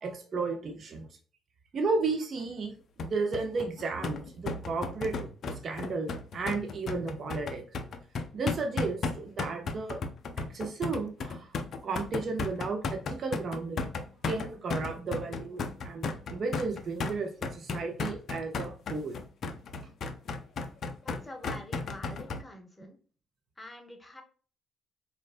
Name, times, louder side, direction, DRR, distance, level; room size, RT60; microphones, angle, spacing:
voice 1, 0.0-1.1 1.7-7.6 8.3-10.0 10.4-11.5 11.8-13.9 14.2-19.2, right 4 dB, 50° right, 4 dB, 0.4 m, -34 dB
sound 1, 3.0-22.4, left 4 dB, 55° left, 0.3 m, -35 dB
voice 2, 21.0-23.0 23.6-24.2, left 1 dB, 20° left, 4 dB, 0.7 m, -46 dB
2.4 x 2.1 x 2.4 m, 0.40 s
hypercardioid pair, 45°, 0 cm